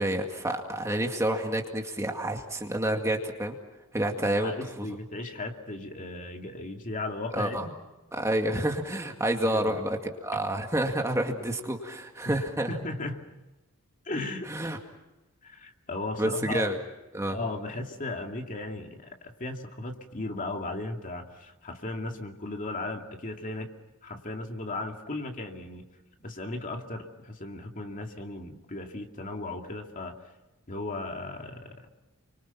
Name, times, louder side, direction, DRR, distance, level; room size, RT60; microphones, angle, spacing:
voice 1, 0.0-3.6 3.9-4.5 4.8-4.9 7.3-7.7 8.1-12.7 14.5-14.8 16.2-16.8 17.1-17.4, right 1 dB, 15° right, 3 dB, 2.1 m, -29 dB
voice 2, 4.2-7.7 9.4-9.8 12.2-12.4 12.7-13.2 14.0-14.5 15.4-16.7 17.3-23.7 24.0-25.8 26.2-30.2 30.7-32.0, left 2 dB, 35° left, 3 dB, 2.4 m, -36 dB
30.0 x 25.0 x 5.9 m, 1.1 s
head